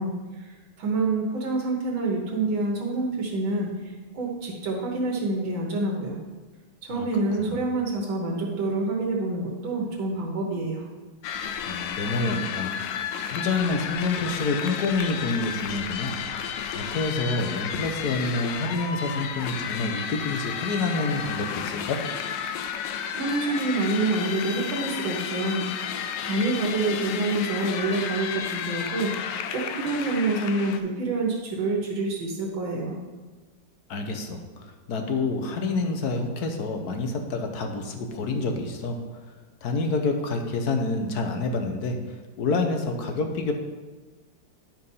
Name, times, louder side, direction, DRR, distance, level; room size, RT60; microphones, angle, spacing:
voice 1, 0.0-3.8 4.1-6.2 6.8-10.8 23.1-25.6 26.2-33.0, right 2 dB, 85° right, -2 dB, 2.0 m, -27 dB
sound 1, 11.2-30.8, left 8 dB, 75° left, 1.3 m, -32 dB
voice 2, 11.7-12.7 13.3-16.2 16.4-22.0 33.9-34.4 34.9-39.0 39.6-42.0 42.4-43.5, left 3 dB, 60° left, 4 dB, 1.4 m, -28 dB
10.5 x 4.4 x 5.4 m, 1.3 s
omnidirectional pair, 2.0 m